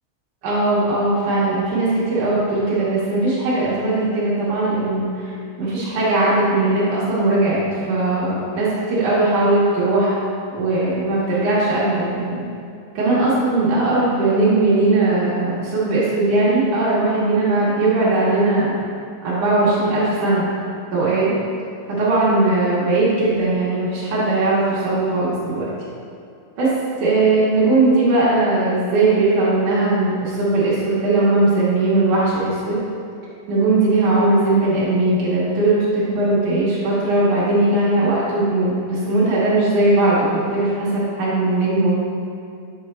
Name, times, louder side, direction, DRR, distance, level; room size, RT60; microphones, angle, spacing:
voice 1, 0.4-5.3 5.6-10.1 10.5-12.4 12.9-18.8 19.2-20.5 20.9-21.3 21.9-25.7 26.6-26.7 27.0-32.8 33.5-42.0, right 2 dB, 75° right, -8 dB, 1.8 m, -19 dB
8.0 x 5.4 x 3.2 m, 2.5 s
omnidirectional pair, 5.4 m